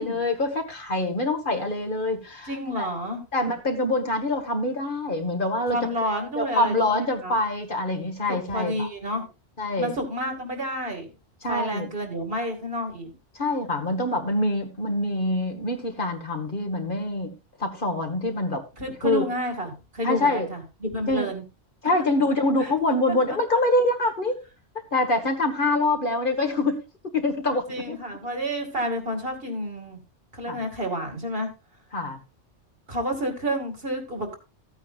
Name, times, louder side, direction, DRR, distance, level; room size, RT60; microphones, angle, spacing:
voice 1, 0.0-2.9 3.3-5.8 6.4-8.9 9.6-10.0 11.4-11.9 13.4-17.3 17.6-18.6 19.0-19.3 20.0-20.5 21.1-21.3 21.8-24.3 24.9-28.0 30.5-30.6 31.9-32.2, left 2 dB, 45° left, 4 dB, 1.7 m, -25 dB
voice 2, 2.5-3.2 5.7-7.4 8.3-9.3 9.8-11.1 11.5-13.1 18.8-21.4 22.6-22.7 27.7-30.0 30.3-31.5 32.9-34.4, equal, 55° right, 4 dB, 2.6 m, -30 dB
15.0 x 9.0 x 2.4 m, 0.28 s
omnidirectional pair, 1.2 m